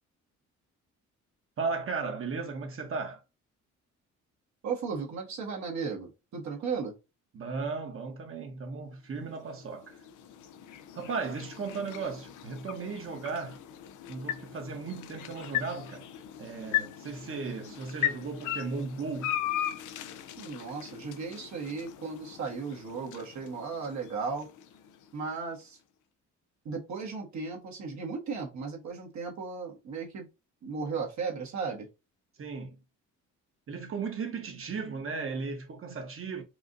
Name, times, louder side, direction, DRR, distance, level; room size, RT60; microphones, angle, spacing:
voice 1, 1.6-3.2 7.3-10.0 10.9-13.6 14.1-16.1 16.4-19.3 32.4-32.8 33.7-36.4, right 4 dB, 45° right, 1.2 m, -36 dB
voice 2, 4.6-6.9 20.4-24.5 25.1-25.8 26.6-30.3 30.6-31.9, right 5 dB, 65° right, 1.5 m, -35 dB
sound 1, 9.2-25.4, left 11 dB, 80° left, 0.6 m, -38 dB
4.8 x 2.5 x 2.6 m
cardioid pair, 90°, 30 cm